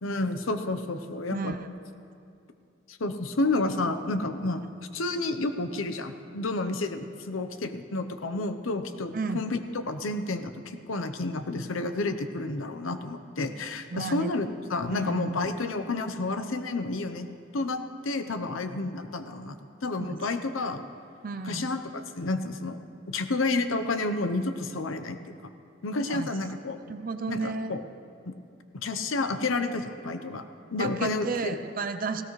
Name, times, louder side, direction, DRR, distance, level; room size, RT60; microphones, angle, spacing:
voice 1, 0.0-1.5 2.9-17.3 17.5-19.6 19.8-20.8 21.4-22.8 23.1-25.3 25.8-26.8 27.3-27.8 28.3-28.4 28.7-30.4 30.7-31.6, left 2 dB, 85° left, 9 dB, 0.8 m, -30 dB
voice 2, 1.3-1.7 9.1-9.4 13.9-14.3 14.9-15.4 21.2-21.7 26.1-26.3 26.9-27.7 30.8-32.2, right 4 dB, 45° right, 8 dB, 0.6 m, -32 dB
18.5 x 16.5 x 3.2 m, 2.5 s
head